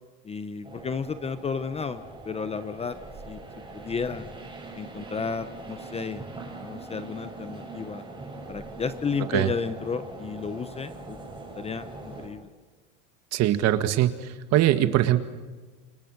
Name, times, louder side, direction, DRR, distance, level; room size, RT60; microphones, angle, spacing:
voice 1, 0.2-3.0 3.3-3.4 3.7-4.3 4.7-6.2 6.6-8.0 8.5-11.2 11.6-12.5, left 5 dB, 15° left, 12 dB, 0.8 m, -32 dB
sound 1, 0.6-12.3, right 3 dB, 15° right, 7.1 m, -42 dB
voice 2, 13.3-14.1 14.5-15.2, right 13 dB, 45° right, 10 dB, 1.8 m, -21 dB
28.5 x 27.0 x 6.6 m, 1.3 s
supercardioid pair, 135°, 37 cm